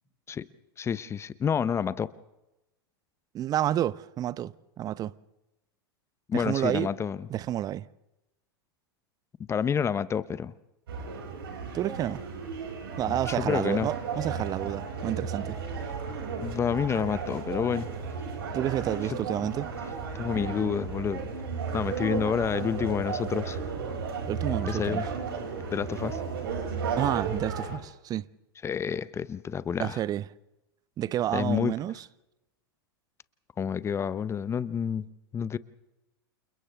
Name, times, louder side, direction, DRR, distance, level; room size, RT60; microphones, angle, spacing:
voice 1, 0.8-2.1 6.3-7.3 9.5-10.5 13.3-13.9 16.4-17.9 19.1-19.5 20.2-21.2 21.7-23.6 24.7-25.1 25.7-26.2 28.6-30.0 31.3-31.7 33.6-35.0 35.3-35.6, left 7 dB, 20° left, 0.8 m, -29 dB
voice 2, 3.3-5.1 6.3-6.9 7.3-7.9 11.7-12.2 13.0-15.6 18.5-19.7 24.3-25.0 27.0-28.3 29.8-30.2 31.0-32.0, right 12 dB, 30° right, 0.7 m, -30 dB
sound 1, 10.9-27.8, right 5 dB, 70° right, 6.2 m, -34 dB
29.5 x 28.5 x 3.5 m
hypercardioid pair, 100°, 13 cm